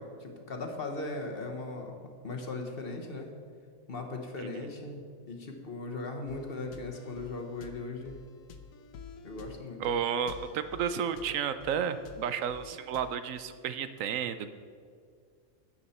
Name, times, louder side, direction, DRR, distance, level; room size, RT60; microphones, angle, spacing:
voice 1, 0.0-2.0 2.2-3.3 3.9-8.2 9.2-10.0, left 3 dB, 45° left, 3 dB, 1.2 m, -38 dB
sound 1, 6.3-13.2, left 6 dB, 80° left, 1.2 m, -50 dB
voice 2, 9.8-14.5, right 8 dB, 80° right, 12 dB, 1.0 m, -32 dB
12.0 x 8.6 x 4.2 m, 2.1 s
omnidirectional pair, 1.4 m